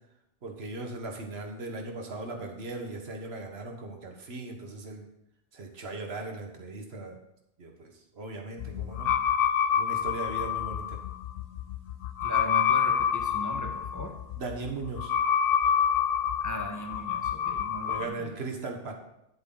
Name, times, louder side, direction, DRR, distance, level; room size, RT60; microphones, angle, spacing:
voice 1, 0.4-5.0 5.5-7.2 7.6-9.1 9.8-11.0 14.4-15.1 17.9-18.9, right 3 dB, 70° right, 3 dB, 1.5 m, -38 dB
sound 1, 8.6-18.1, left 8 dB, 65° left, 0.8 m, -27 dB
voice 2, 12.2-14.1 16.4-18.4, equal, 15° left, 3 dB, 1.1 m, -38 dB
9.7 x 7.8 x 3.8 m, 0.84 s
omnidirectional pair, 1.1 m